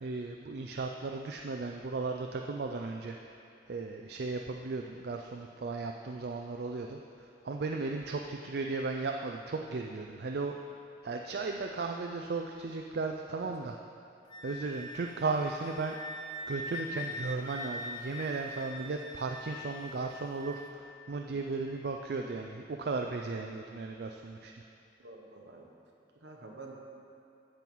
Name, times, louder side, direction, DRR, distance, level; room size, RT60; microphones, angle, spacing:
voice 1, 0.0-3.3 3.7-7.0 7.4-10.5 11.0-13.8 14.4-15.9 16.5-24.5, right 3 dB, 60° right, 2 dB, 0.4 m, -35 dB
Wind instrument woodwind instrument, 14.3-20.7, left 1 dB, 25° left, 0.6 m, -43 dB
voice 2, 25.0-25.7 26.1-26.7, right 3 dB, 75° right, 0 dB, 1.3 m, -49 dB
14.0 x 4.6 x 5.5 m, 2.7 s
head